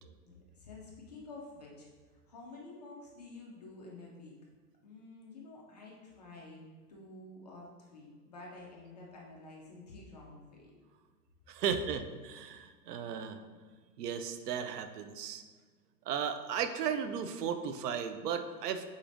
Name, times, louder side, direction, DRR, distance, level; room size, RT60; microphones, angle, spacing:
voice 1, 0.2-4.4 4.8-6.6 6.9-10.7, left 2 dB, 30° left, -2 dB, 0.4 m, -50 dB
voice 2, 11.5-13.4 14.0-15.4 16.1-18.8, right 7 dB, 75° right, 9 dB, 0.6 m, -35 dB
5.0 x 4.1 x 2.6 m, 1.5 s
hypercardioid pair, 145°, 48 cm